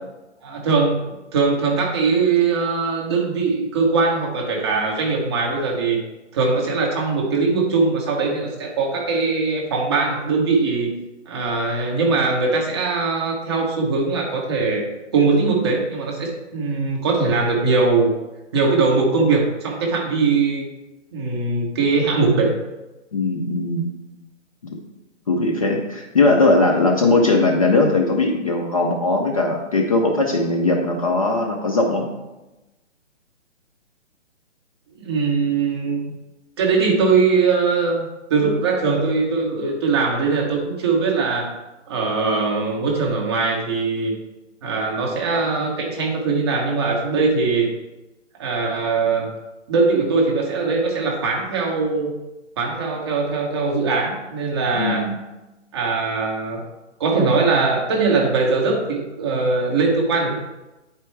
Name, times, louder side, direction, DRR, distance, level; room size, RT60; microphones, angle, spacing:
voice 1, 0.4-6.0 6.3-10.9 11.3-14.8 15.1-18.1 18.5-20.7 21.1-22.5 35.0-36.0 36.6-41.5 41.9-44.2 44.6-47.7 48.4-49.3 49.7-52.2 52.6-55.1 55.7-56.6 57.0-60.3, right 4 dB, 20° right, -2 dB, 0.9 m, -21 dB
voice 2, 23.1-24.0 24.7-24.8 25.3-32.1 54.7-55.2, left 2 dB, 30° left, 0 dB, 0.6 m, -19 dB
9.4 x 4.4 x 3.3 m, 1.0 s
hypercardioid pair, 160°, 36 cm